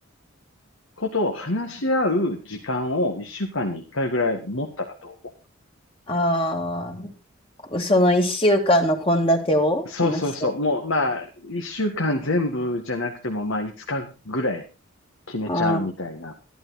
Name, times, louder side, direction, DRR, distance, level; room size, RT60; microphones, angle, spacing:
voice 1, 1.0-5.1 9.9-14.6 15.3-16.3, left 2 dB, 70° left, 3 dB, 1.8 m, -26 dB
voice 2, 6.1-7.1 7.6-10.5 15.5-15.8, equal, 25° left, 4 dB, 2.3 m, -22 dB
13.5 x 12.5 x 4.1 m, 0.31 s
head